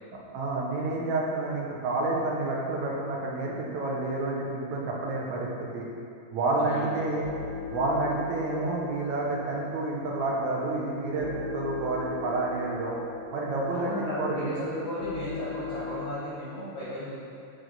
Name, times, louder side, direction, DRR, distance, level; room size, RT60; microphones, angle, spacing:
voice 1, 0.3-5.9 6.3-7.3 7.7-13.0 13.3-13.9 14.2-14.6, right 2 dB, 75° right, -3 dB, 2.0 m, -29 dB
voice 2, 6.4-7.1 13.7-17.2, equal, 70° left, -9 dB, 1.1 m, -35 dB
sound 1, 6.6-16.1, left 6 dB, 85° left, 2.2 m, -40 dB
7.6 x 4.8 x 3.9 m, 2.5 s
omnidirectional pair, 3.6 m